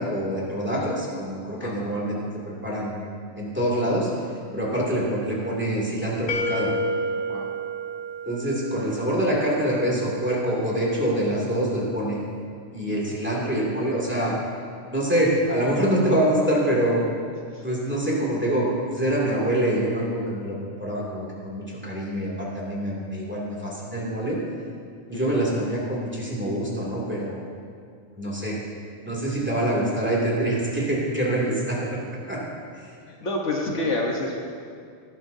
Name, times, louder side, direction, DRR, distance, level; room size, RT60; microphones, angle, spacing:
voice 1, 0.0-2.9 3.4-6.7 8.3-12.2 12.7-14.3 14.9-17.0 17.6-24.4 25.1-27.4 28.2-28.6 29.0-31.9 32.3-32.4 32.7-32.9, right 1 dB, 10° right, -5 dB, 2.5 m, -25 dB
sound 1, 6.3-9.1, right 1 dB, 85° left, 1.6 m, -29 dB
voice 2, 33.1-34.3, left 2 dB, 60° left, -1 dB, 1.4 m, -28 dB
18.5 x 11.0 x 2.7 m, 2.2 s
omnidirectional pair, 1.4 m